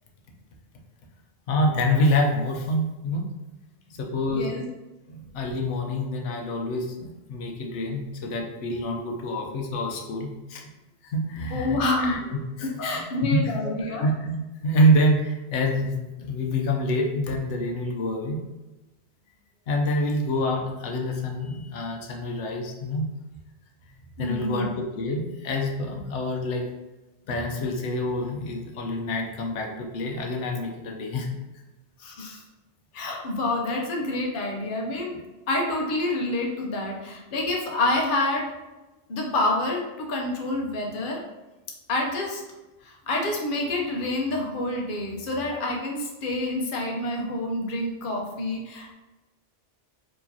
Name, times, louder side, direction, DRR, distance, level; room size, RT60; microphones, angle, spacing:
voice 1, 1.5-3.3 4.0-4.5 5.3-10.6 11.0-13.5 14.0-18.4 19.7-23.1 24.2-26.7 27.3-31.3, equal, 90° left, 1 dB, 1.0 m, -26 dB
voice 2, 4.3-4.6 5.1-5.2 11.5-12.2 12.6-14.1 24.2-24.7 32.0-32.4 32.9-35.2 35.5-38.5 39.1-41.2 41.9-42.4 42.8-48.9, left 2 dB, 50° left, 0 dB, 0.9 m, -28 dB
4.7 x 3.0 x 2.7 m, 1.1 s
omnidirectional pair, 1.2 m